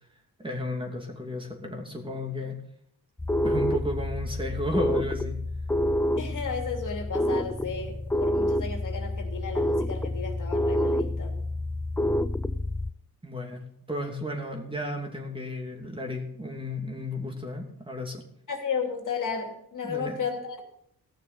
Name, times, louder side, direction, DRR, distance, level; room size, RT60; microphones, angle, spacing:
voice 1, 0.4-2.6 3.4-5.4 13.2-13.6 13.9-18.2 19.8-20.2, left 1 dB, 15° right, 2 dB, 2.7 m, -33 dB
sound 1, 3.2-12.9, left 1 dB, 5° left, 0.4 m, -28 dB
voice 2, 6.2-11.3 18.5-20.6, left 5 dB, 60° left, 2 dB, 2.8 m, -33 dB
16.0 x 6.8 x 6.7 m, 0.73 s
cardioid pair, 90°, 35 cm